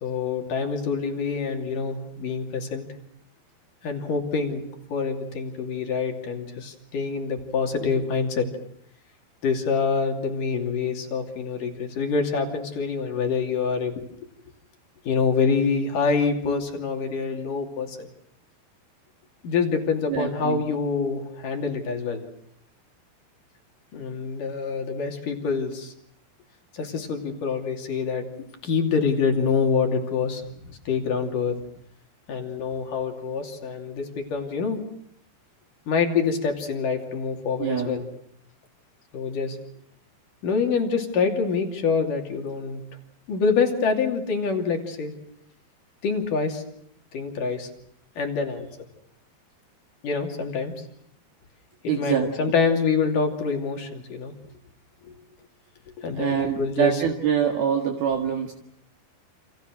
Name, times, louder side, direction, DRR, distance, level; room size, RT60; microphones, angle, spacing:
voice 1, 0.0-2.9 3.8-4.6 4.9-8.5 9.4-13.9 15.1-18.1 19.4-22.2 23.9-25.9 26.7-28.2 28.6-31.6 32.3-34.8 35.9-38.0 39.1-39.6 40.4-42.8 43.3-45.1 46.0-46.6 47.1-47.7 48.2-48.7 50.0-50.7 51.8-54.3 56.0-57.0, left 5 dB, 50° left, 3 dB, 4.0 m, -26 dB
voice 2, 20.1-20.6 37.6-38.1 51.9-52.5 56.2-58.5, right 8 dB, 60° right, 3 dB, 3.5 m, -25 dB
29.5 x 28.0 x 6.4 m, 0.68 s
omnidirectional pair, 5.2 m